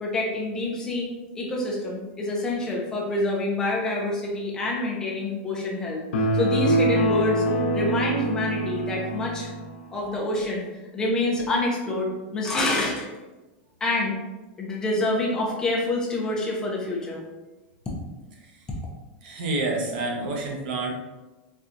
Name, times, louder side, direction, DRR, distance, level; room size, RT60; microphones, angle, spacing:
voice 1, 0.0-7.4 7.7-9.5 9.9-10.7 10.9-13.1 13.8-14.2 14.6-17.2, left 2 dB, 10° left, -2 dB, 0.5 m, -27 dB
sound 1, 6.1-9.7, right 1 dB, 85° left, 0.6 m, -24 dB
voice 2, 19.2-20.9, right 2 dB, 55° right, 0 dB, 0.7 m, -28 dB
4.3 x 2.3 x 2.5 m, 1.1 s
supercardioid pair, 180°, 6 cm